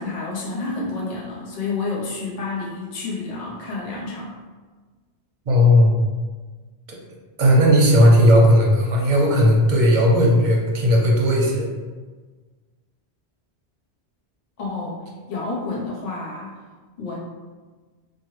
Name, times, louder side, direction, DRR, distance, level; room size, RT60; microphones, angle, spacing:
voice 1, 0.0-4.3 14.6-15.0 15.3-16.5 17.0-17.2, left 3 dB, 40° left, -6 dB, 0.7 m, -29 dB
voice 2, 5.5-6.0 7.4-11.7, equal, 55° right, -2 dB, 0.6 m, -15 dB
3.0 x 2.1 x 3.1 m, 1.4 s
omnidirectional pair, 1.1 m